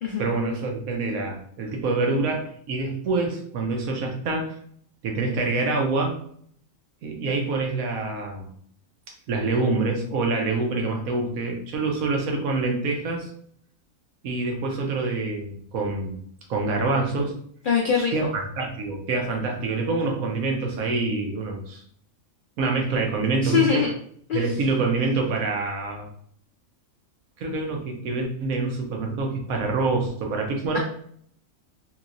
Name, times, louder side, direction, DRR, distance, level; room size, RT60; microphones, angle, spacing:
voice 1, 0.2-4.5 5.0-6.2 7.0-8.5 9.3-13.3 14.2-16.2 16.5-17.3 18.1-21.8 22.6-23.9 24.3-26.1 27.4-30.8, right 3 dB, 80° right, 1 dB, 1.2 m, -26 dB
voice 2, 17.6-18.1 23.4-23.9 24.3-24.5, left 7 dB, 80° left, 0 dB, 0.4 m, -22 dB
3.0 x 2.9 x 2.5 m, 0.62 s
omnidirectional pair, 1.5 m